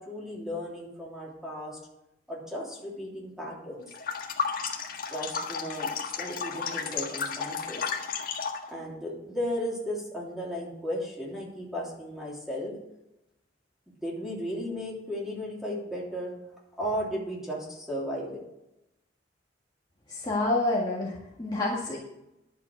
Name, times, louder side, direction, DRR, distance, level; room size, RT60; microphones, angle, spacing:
voice 1, 0.0-1.8 2.3-3.8 5.1-7.9 8.7-12.7 14.0-16.3 16.8-18.4, equal, 5° right, -4 dB, 3.3 m, -35 dB
sound 1, 3.9-8.7, left 6 dB, 55° left, 1.6 m, -33 dB
voice 2, 20.1-22.0, left 2 dB, 25° left, -5 dB, 1.7 m, -28 dB
11.0 x 7.3 x 6.6 m, 0.90 s
head